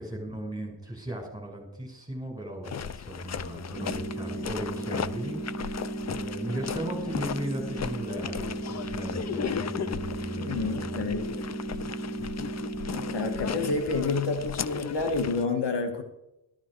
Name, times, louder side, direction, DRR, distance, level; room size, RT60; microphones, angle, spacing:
voice 1, 0.0-11.1 11.7-11.9, right 1 dB, 10° right, 1 dB, 5.8 m, -37 dB
sound 1, 2.6-15.4, left 7 dB, 40° left, 0.6 m, -36 dB
sound 2, 3.8-13.8, right 2 dB, 10° left, 3.0 m, -35 dB
voice 2, 10.4-11.3 12.9-16.0, left 3 dB, 70° left, 5 dB, 2.0 m, -29 dB
13.5 x 13.0 x 4.8 m, 0.89 s
cardioid pair, 85°, 44 cm